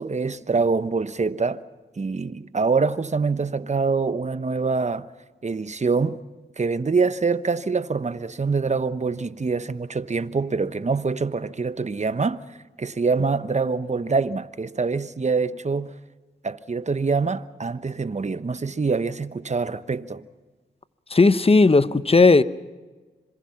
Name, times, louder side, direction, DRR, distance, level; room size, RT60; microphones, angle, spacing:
voice 1, 0.0-1.6 2.0-5.1 5.4-6.2 6.6-12.4 12.8-15.9 16.4-20.2, right 4 dB, 35° right, 1.0 m, -25 dB
voice 2, 21.1-22.4, left 3 dB, 30° left, 1.0 m, -15 dB
26.0 x 22.0 x 5.9 m
supercardioid pair, 45°, 19 cm